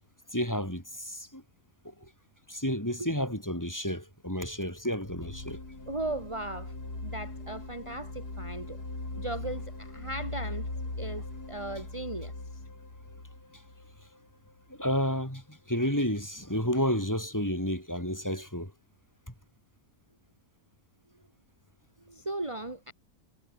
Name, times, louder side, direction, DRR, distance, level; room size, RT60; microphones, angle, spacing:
voice 1, 0.3-1.4 2.5-5.6 14.7-18.7, equal, 10° left, 5.9 m, -31 dB
sound 1, 5.0-14.8, left 2 dB, 80° left, 6.5 m, -40 dB
voice 2, 5.9-8.8 9.2-10.7 11.0-12.6 22.0-22.9, right 2 dB, 20° right, 2.8 m, -37 dB
omnidirectional pair, 1.6 m